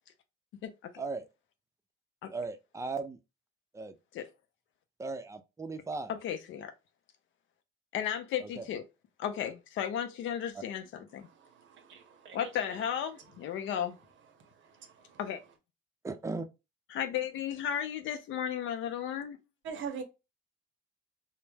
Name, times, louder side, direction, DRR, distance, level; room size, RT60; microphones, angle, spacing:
voice 1, 2.3-3.2 3.7-3.9 5.0-6.1 8.4-8.6 16.0-16.5, right 3 dB, 15° right, 0.4 m, -37 dB
voice 2, 6.1-6.7 7.9-8.8 9.2-11.2 12.3-13.9 15.2-15.4 16.9-19.4, left 9 dB, 75° left, 0.4 m, -34 dB
voice 3, 11.3-12.4 14.6-15.2 19.6-20.0, right 6 dB, 70° right, 0.6 m, -43 dB
2.1 x 2.0 x 3.2 m
cardioid pair, 90°, 20 cm